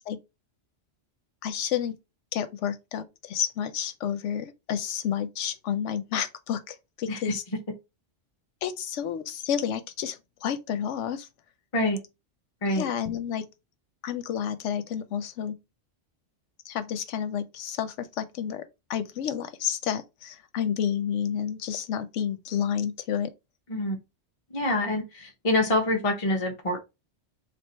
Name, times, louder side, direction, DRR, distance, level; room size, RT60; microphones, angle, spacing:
voice 1, 1.4-1.9 2.3-7.4 8.6-11.3 12.7-13.5 14.0-15.6 16.7-18.6 18.9-23.3, left 8 dB, 85° left, 0.9 m, -30 dB
voice 2, 24.5-26.8, left 1 dB, 30° left, 0.9 m, -26 dB
3.4 x 2.8 x 4.3 m
omnidirectional pair, 1.2 m